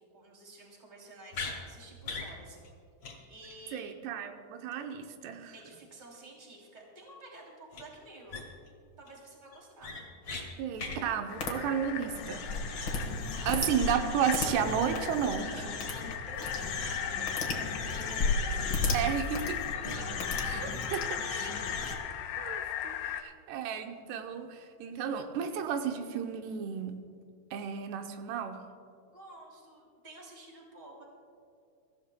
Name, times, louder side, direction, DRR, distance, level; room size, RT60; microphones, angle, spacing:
voice 1, 0.1-2.7 3.3-3.9 5.5-8.5 9.0-9.9 13.4-13.7 16.3-19.2 19.7-19.8 20.2-22.0 29.1-31.0, right 2 dB, 15° right, -2 dB, 2.3 m, -51 dB
sound 1, 1.3-1.6 2.0-2.3 2.6-2.7 3.0-3.2 3.4-3.5 7.7-7.8 8.3-8.7 9.1-9.2 9.5-10.4 10.8-11.0, left 4 dB, 40° left, 2.4 m, -38 dB
voice 2, 3.7-5.5 10.6-12.5 13.5-15.7 18.9-19.4 19.8-20.0 20.4-21.0 21.3-21.5 22.4-27.0 27.5-28.6, right 8 dB, 90° right, 6 dB, 2.9 m, -33 dB
sound 2, 11.3-23.2, left 9 dB, 85° left, 2.7 m, -38 dB
sound 3, 11.4-11.5 12.0-22.0, left 3 dB, 65° left, 1.2 m, -34 dB
24.0 x 14.0 x 2.2 m, 2.3 s
omnidirectional pair, 4.6 m